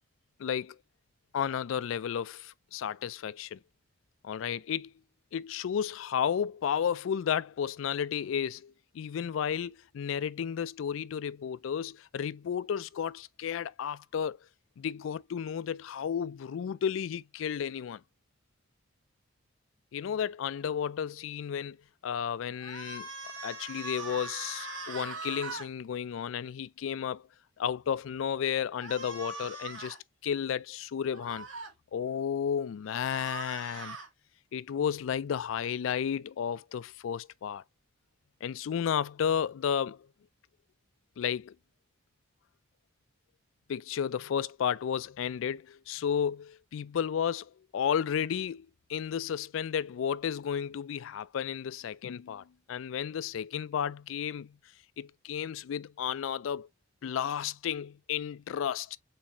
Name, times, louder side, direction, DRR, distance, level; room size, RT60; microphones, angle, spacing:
voice 1, 0.4-0.8 1.3-3.6 4.2-4.9 5.3-14.4 14.8-18.0 19.9-21.8 22.0-23.1 23.4-27.2 27.6-30.0 30.2-31.5 31.9-34.0 34.5-37.6 38.4-40.1 41.2-41.5 43.7-54.6 55.0-56.7 57.0-59.0, left 8 dB, 80° left, 0.3 m, -33 dB
sound 1, 22.6-25.7 28.8-30.0 31.1-31.7 32.9-34.1, right 3 dB, 85° right, 2.0 m, -41 dB
4.2 x 4.1 x 2.8 m
head